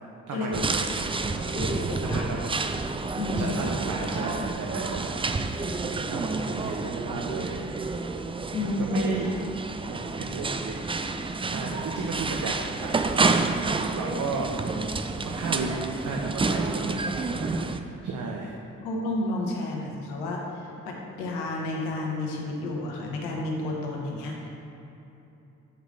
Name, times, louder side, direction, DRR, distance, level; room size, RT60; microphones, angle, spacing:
voice 1, 0.3-1.4 1.7-2.6 3.4-5.2 6.1-8.0 8.6-9.3 9.8-10.8 11.1-11.2 11.5-13.4 13.9-14.5 15.2-15.7 16.0-17.5 17.8-18.6, right 3 dB, 55° right, -1 dB, 0.9 m, -34 dB
sound 1, 0.5-17.8, right 3 dB, 15° right, 0.4 m, -29 dB
voice 2, 1.5-2.3 3.2-3.6 8.5-9.0 18.8-24.5, left 2 dB, 85° left, -1 dB, 1.0 m, -31 dB
8.1 x 4.9 x 3.8 m, 3.0 s
hypercardioid pair, 40°, 38 cm